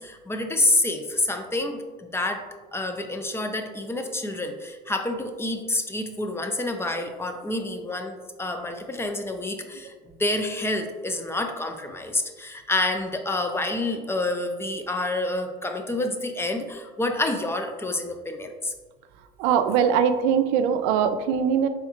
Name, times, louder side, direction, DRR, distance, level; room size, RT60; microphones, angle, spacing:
voice 1, 0.0-2.4 2.7-18.7, left 2 dB, 15° left, 5 dB, 0.5 m, -28 dB
voice 2, 19.4-21.7, right 8 dB, 90° right, 9 dB, 0.4 m, -21 dB
4.7 x 3.5 x 2.8 m, 1.3 s
supercardioid pair, 100°, 18 cm